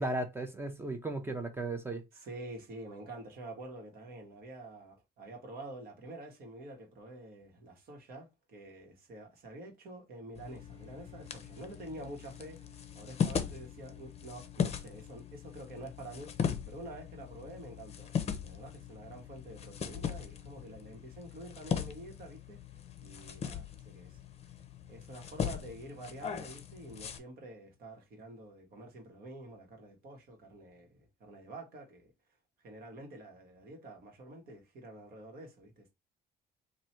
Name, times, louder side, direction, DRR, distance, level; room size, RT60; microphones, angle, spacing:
voice 1, 0.0-2.0, right 2 dB, 15° right, 0.7 m, -35 dB
voice 2, 2.1-12.7 12.9-16.4 16.7-18.1 18.4-22.6 23.0-24.2 24.9-32.1 32.6-35.9, right 2 dB, 65° right, 1.5 m, -48 dB
sound 1, 10.3-27.2, left 7 dB, 40° left, 0.6 m, -39 dB
sound 2, 10.4-21.0, left 4 dB, 35° right, 1.4 m, -59 dB
3.1 x 2.6 x 4.2 m
cardioid pair, 110°, 17 cm